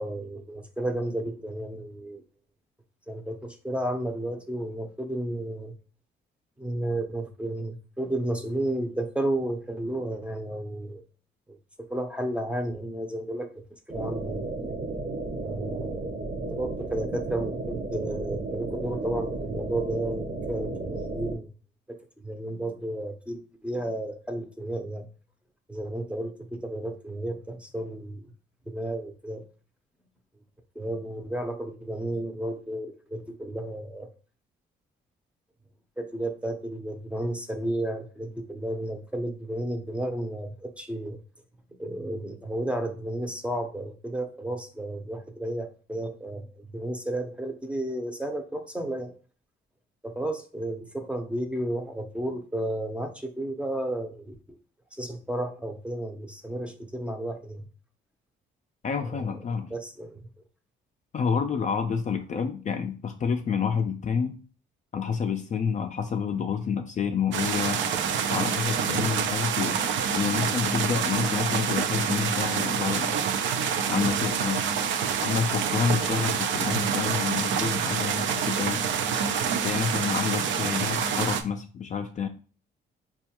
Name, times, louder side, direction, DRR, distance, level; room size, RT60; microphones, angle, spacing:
voice 1, 0.0-2.2 3.1-5.7 6.6-11.0 11.9-13.6 13.9-14.5 15.4-16.2 16.5-21.5 22.2-25.1 25.7-28.3 28.7-29.4 30.8-34.1 36.0-41.2 41.8-49.1 50.0-54.6 55.0-57.7 59.0-59.3 59.7-60.2, right 1 dB, 5° right, 5 dB, 0.6 m, -32 dB
sound 1, 13.9-21.4, right 3 dB, 40° right, 0.7 m, -33 dB
voice 2, 58.8-59.7 61.1-64.4 64.9-67.8 68.3-69.8 70.1-73.2 73.9-74.7 75.2-78.9 79.6-82.3, left 6 dB, 40° left, 5 dB, 0.4 m, -28 dB
sound 2, 67.3-81.4, right 7 dB, 70° right, 0.4 m, -27 dB
4.2 x 2.3 x 2.8 m, 0.39 s
cardioid pair, 90°, 20 cm